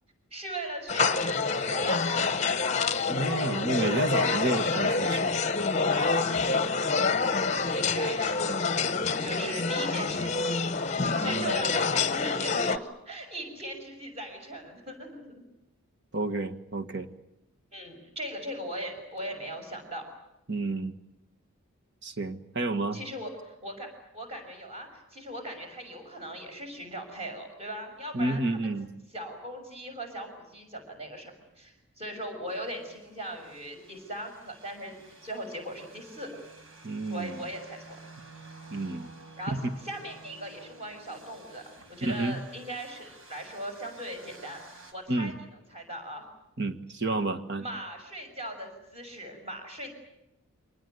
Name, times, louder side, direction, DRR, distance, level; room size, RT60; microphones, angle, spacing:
voice 1, 0.3-2.0 7.2-8.4 9.2-10.8 11.2-15.4 17.7-20.1 22.9-23.9 24.1-28.4 29.1-36.3 37.1-38.0 39.4-39.6 39.8-44.6 44.9-45.3 45.7-46.3 47.6-49.9, right 1 dB, 30° right, 3 dB, 6.3 m, -39 dB
sound 1, 0.9-12.8, left 4 dB, 30° left, 0.9 m, -27 dB
voice 2, 3.1-5.3 11.2-11.5 16.1-17.1 20.5-20.9 22.0-23.0 28.1-28.9 36.8-37.4 38.7-39.1 39.5-39.8 42.1-42.4 45.1-45.3 46.6-47.6, right 2 dB, 50° right, 7 dB, 1.6 m, -30 dB
sound 2, 32.5-44.9, right 2 dB, 65° right, 4.4 m, -52 dB
25.5 x 19.5 x 9.4 m, 0.88 s
head